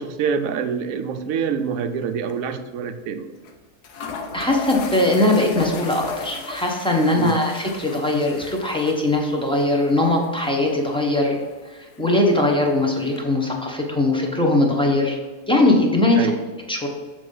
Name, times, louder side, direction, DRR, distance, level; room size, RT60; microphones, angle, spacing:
voice 1, 0.0-3.3 7.1-7.4 16.2-16.4, right 6 dB, 70° right, 8 dB, 0.9 m, -26 dB
sound 1, 1.8-2.0 2.3-2.4 3.4-3.5 3.8-13.2, left 5 dB, 80° left, 1.3 m, -37 dB
voice 2, 4.3-11.4 11.7-15.2 15.5-16.3 16.7-16.9, left 2 dB, 5° left, 0 dB, 0.6 m, -20 dB
7.2 x 3.4 x 5.3 m, 1.3 s
omnidirectional pair, 1.7 m